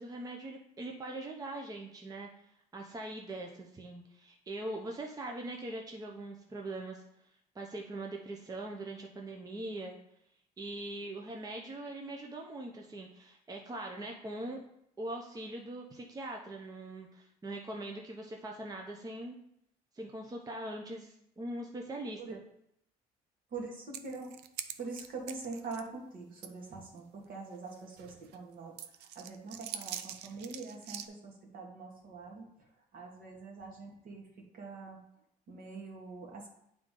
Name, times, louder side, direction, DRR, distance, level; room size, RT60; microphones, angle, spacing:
voice 1, 0.0-2.3 2.7-7.0 7.5-10.0 10.6-14.6 15.0-19.4 19.9-22.4, right 1 dB, 20° right, 1 dB, 0.7 m, -42 dB
voice 2, 23.5-24.4 24.8-32.4 32.9-34.2 34.5-35.0 35.5-36.5, right 3 dB, 60° right, 0 dB, 1.8 m, -44 dB
sound 1, 23.9-25.9 26.4-26.5 27.0-27.1 27.7-28.4 28.8-31.1, right 10 dB, 80° right, 0.5 m, -44 dB
9.0 x 3.7 x 3.7 m, 0.75 s
cardioid pair, 110°, 17 cm